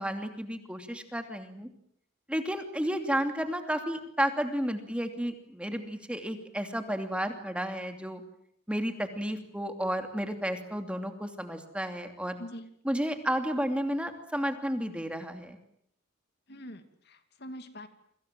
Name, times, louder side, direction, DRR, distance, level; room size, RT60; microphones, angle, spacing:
voice 1, 0.0-1.7 2.3-8.2 8.7-12.4 12.8-15.6, equal, 5° right, 6 dB, 2.8 m, -32 dB
voice 2, 12.4-12.7 16.5-17.9, equal, 55° left, 8 dB, 2.6 m, -44 dB
29.0 x 25.0 x 7.7 m, 0.67 s
head